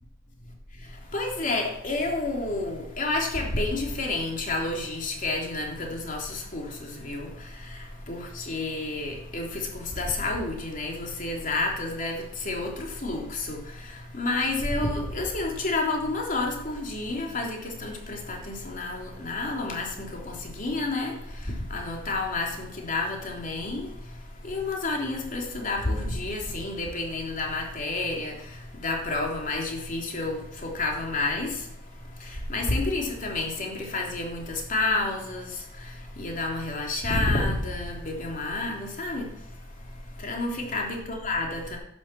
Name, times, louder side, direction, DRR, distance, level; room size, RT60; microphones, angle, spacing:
voice 1, 1.1-21.1 21.4-23.9 24.4-28.3 28.7-31.6 32.2-39.3 40.2-41.8, left 2 dB, 45° left, 0 dB, 3.3 m, -30 dB
11.0 x 7.4 x 7.6 m, 0.81 s
head